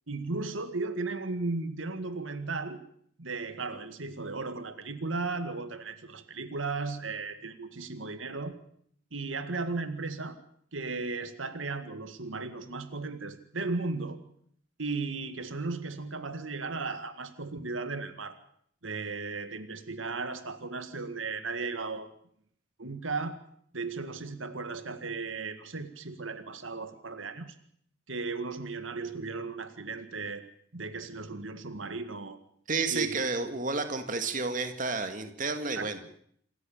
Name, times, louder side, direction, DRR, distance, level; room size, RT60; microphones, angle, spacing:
voice 1, 0.1-2.8 3.2-8.6 9.1-10.4 10.7-14.2 14.8-18.4 18.8-22.1 22.8-23.4 23.7-27.6 28.1-30.4 30.7-32.4 32.9-33.2 35.8-35.9, right 3 dB, 85° right, 10 dB, 2.0 m, -35 dB
voice 2, 32.7-36.0, right 4 dB, 40° right, 8 dB, 2.2 m, -31 dB
27.0 x 14.5 x 7.3 m, 0.64 s
head